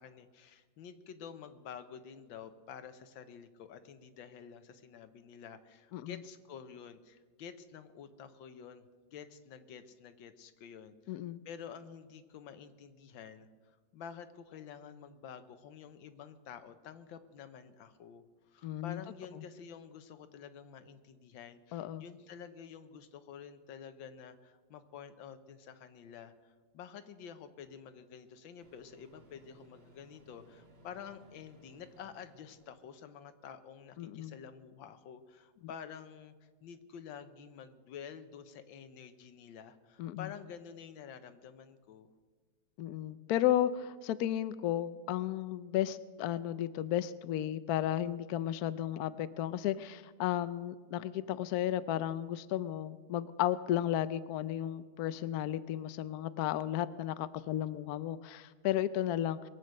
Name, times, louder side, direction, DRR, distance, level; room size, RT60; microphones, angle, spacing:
voice 1, 0.0-8.8 9.1-11.2 11.4-13.5 13.9-42.1, left 7 dB, 90° left, 10 dB, 1.6 m, -49 dB
voice 2, 11.1-11.4 18.6-19.0 21.7-22.0 34.0-34.3 40.0-40.3 42.8-59.5, left 12 dB, 70° left, 14 dB, 0.9 m, -34 dB
Microwave oven, 27.6-27.7 28.6-32.9, right 1 dB, 35° right, 1.8 m, -62 dB
22.0 x 8.1 x 6.4 m, 1.4 s
omnidirectional pair, 2.0 m